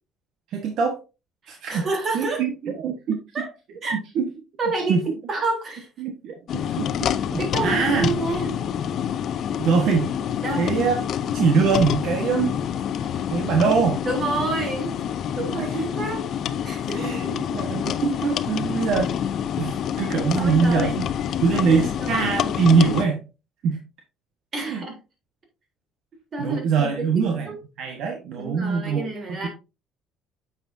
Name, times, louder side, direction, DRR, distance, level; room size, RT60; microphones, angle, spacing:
voice 1, 0.5-1.0 1.5-1.9 2.1-3.4 4.1-4.3 4.9-5.0 6.0-6.4 6.7-6.9 7.3-8.1 9.6-10.1 10.6-10.9 11.3-12.6 13.3-14.0 15.5-15.9 16.9-19.1 19.6-21.1 21.4-23.2 23.6-23.8 24.6-24.8 26.4-27.5 27.8-29.0 29.3-29.5, right 5 dB, 65° right, 1.4 m, -23 dB
voice 2, 1.4-2.5 3.3-3.5 3.8-4.0 4.6-5.0 5.3-5.9 7.4-8.6 10.4-10.7 14.0-14.9 15.4-16.3 16.7-17.1 20.4-21.0 21.5-22.6 24.5-25.0 26.3-27.6 28.4-29.5, right 3 dB, 35° right, 3.5 m, -29 dB
sound 1, 6.5-23.1, left 9 dB, 55° left, 0.6 m, -27 dB
9.0 x 7.1 x 2.7 m
cardioid pair, 135°, 0 cm